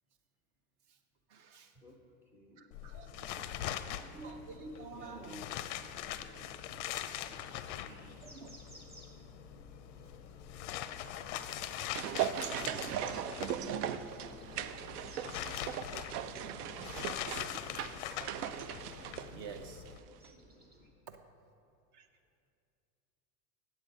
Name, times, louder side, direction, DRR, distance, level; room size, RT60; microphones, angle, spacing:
voice 1, 1.3-1.7 2.6-3.6 3.9-5.5 6.7-6.8 8.2-8.5 12.0-12.8 13.1-13.2 19.3-19.8 21.1-21.2 21.9-22.1, right 4 dB, 45° right, 8 dB, 0.7 m, -49 dB
voice 2, 2.3-2.7 3.0-3.4 4.0-4.4 4.9-5.7 6.2-6.5 7.2-8.2 12.1-14.5 15.7-18.0, equal, 5° right, 1 dB, 0.4 m, -57 dB
sound 1, 2.7-20.0, left 11 dB, 50° left, 0.4 m, -43 dB
sound 2, 3.2-20.9, right 1 dB, 20° right, 0.9 m, -59 dB
sound 3, 11.4-20.0 20.2-20.3, right 10 dB, 75° right, 0.6 m, -39 dB
8.3 x 7.4 x 5.1 m, 2.5 s
supercardioid pair, 150°, 46 cm